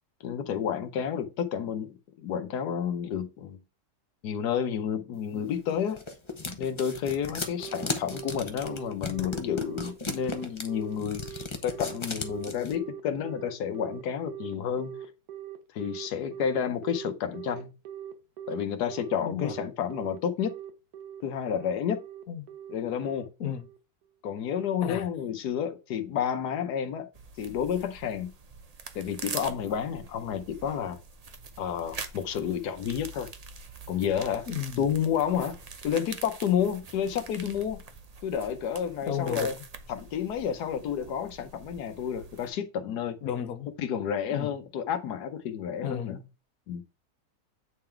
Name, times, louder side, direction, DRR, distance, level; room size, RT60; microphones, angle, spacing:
voice 1, 0.2-3.6 4.2-6.0 6.6-14.9 15.7-17.7 18.5-20.5 21.2-22.0 22.7-23.3 24.2-27.1 27.4-28.3 28.9-31.0 31.6-33.3 33.9-34.5 34.8-35.6 35.8-37.8 38.2-39.6 39.9-43.2 43.8-46.2 46.7-46.8, left 8 dB, 90° left, 1.4 m, -30 dB
sound 1, 5.5-12.7, left 3 dB, 25° left, 0.7 m, -36 dB
Telephone, 7.6-23.8, right 10 dB, 75° right, 1.5 m, -41 dB
voice 2, 19.2-19.5 22.3-22.5 23.4-23.6 24.8-25.1 34.5-34.8 39.1-39.5 43.2-43.7 44.3-44.5 45.8-46.1, left 9 dB, 70° left, 1.3 m, -33 dB
sound 2, 27.1-42.5, right 4 dB, 45° right, 0.5 m, -44 dB
8.8 x 3.8 x 4.4 m
omnidirectional pair, 1.7 m